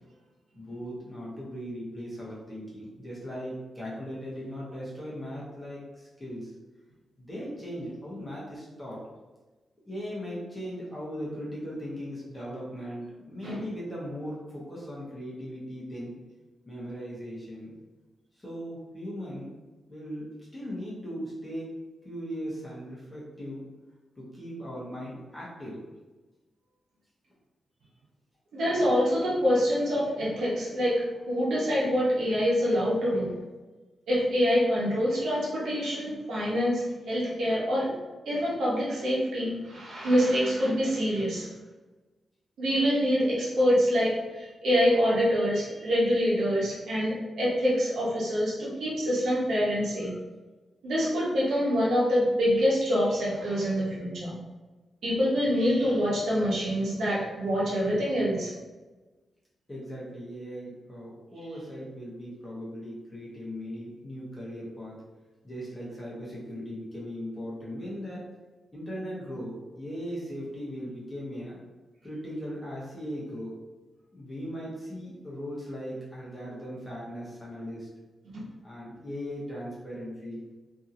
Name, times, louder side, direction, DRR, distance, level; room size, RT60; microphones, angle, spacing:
voice 1, 0.6-6.5 7.2-9.0 9.9-16.2 16.7-17.7 18.4-19.5 19.9-21.7 22.0-23.7 24.2-25.8 59.7-65.0 65.4-68.3 68.7-71.6 72.0-73.5 74.1-77.9 78.6-80.4, equal, 15° left, -7 dB, 1.0 m, -38 dB
voice 2, 28.5-33.3 34.1-37.9 38.2-41.5 42.6-50.1 50.8-54.4 55.0-58.5 78.3-78.4, equal, 85° right, -7 dB, 1.0 m, -26 dB
2.7 x 2.7 x 2.5 m, 1.2 s
wide cardioid pair, 140°, 0 cm